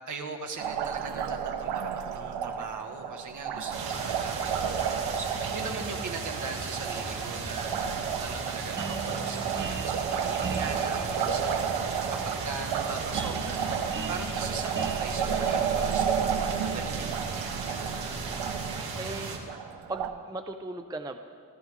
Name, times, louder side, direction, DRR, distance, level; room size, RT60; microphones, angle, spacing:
voice 1, 0.1-13.8 14.1-17.8, right 4 dB, 50° right, 4 dB, 1.8 m, -40 dB
Liquid, 0.6-20.1, right 7 dB, 85° right, 1.1 m, -32 dB
sound 1, 3.7-19.4, right 4 dB, 65° right, 2.4 m, -36 dB
sound 2, 8.6-17.3, right 4 dB, 30° right, 1.0 m, -40 dB
voice 2, 18.0-18.5 19.0-19.4 19.9-21.2, right 2 dB, 10° right, 7 dB, 0.5 m, -38 dB
28.0 x 14.0 x 3.6 m, 2.3 s
cardioid pair, 145°, 40 cm